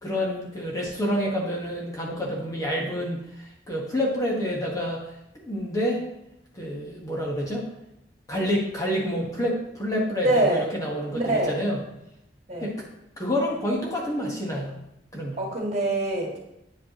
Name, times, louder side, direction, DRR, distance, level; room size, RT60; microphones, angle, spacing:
voice 1, 0.0-5.0 5.3-6.0 6.5-7.6 8.3-11.8 12.6-12.7 13.2-14.7 15.1-15.4, equal, 20° left, -4 dB, 1.3 m, -28 dB
voice 2, 10.2-10.6 11.1-11.6 12.5-12.7 15.4-16.4, right 2 dB, 40° right, -2 dB, 2.0 m, -24 dB
9.6 x 5.2 x 2.9 m, 0.83 s
head